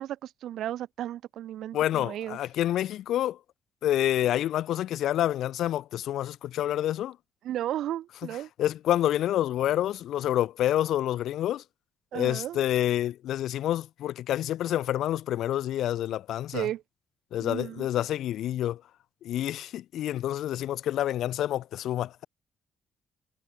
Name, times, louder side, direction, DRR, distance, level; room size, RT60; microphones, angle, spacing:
voice 1, 0.0-2.4 7.4-8.5 12.1-12.6 16.5-16.8 17.4-17.9, right 12 dB, 80° right, 4.4 m, -34 dB
voice 2, 1.7-3.4 3.8-7.2 8.6-11.6 12.1-16.7 17.3-18.8 19.2-22.3, left 12 dB, 80° left, 0.5 m, -28 dB
cardioid pair, 90°, 0 cm